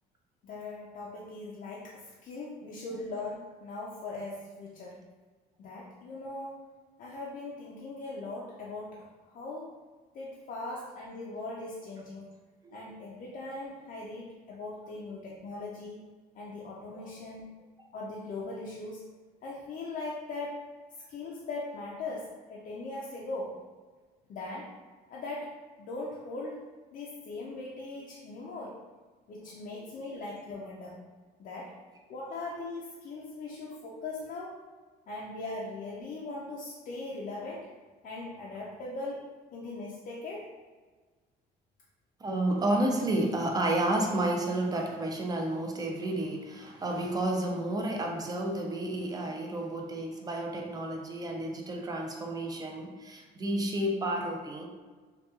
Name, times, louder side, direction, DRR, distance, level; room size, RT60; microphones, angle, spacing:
voice 1, 0.4-5.0 5.6-6.7 7.0-9.8 10.1-12.3 12.7-16.0 16.3-17.5 17.9-19.0 19.4-20.7 21.1-23.6 24.3-24.7 25.1-25.5 25.8-26.6 26.9-28.8 29.3-31.0 31.4-31.7 32.1-34.6 35.1-37.7 38.0-40.5, left 2 dB, 55° left, -4 dB, 0.4 m, -40 dB
voice 2, 42.2-54.7, right 1 dB, 20° right, 1 dB, 0.4 m, -31 dB
2.9 x 2.2 x 2.3 m, 1.4 s
cardioid pair, 110°, 17 cm